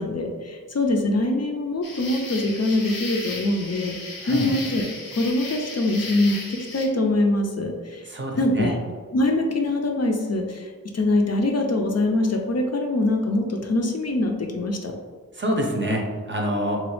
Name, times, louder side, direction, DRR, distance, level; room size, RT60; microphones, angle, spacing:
voice 1, 0.0-4.9 5.1-8.1 8.4-8.8 9.1-14.9, left 2 dB, 50° left, 2 dB, 0.4 m, -23 dB
sound 1, 1.8-6.9, left 2 dB, 80° left, 0.7 m, -35 dB
voice 2, 8.1-8.7 15.3-16.8, equal, 35° right, 0 dB, 0.6 m, -26 dB
3.0 x 2.3 x 3.1 m, 1.5 s
wide cardioid pair, 55°, 34 cm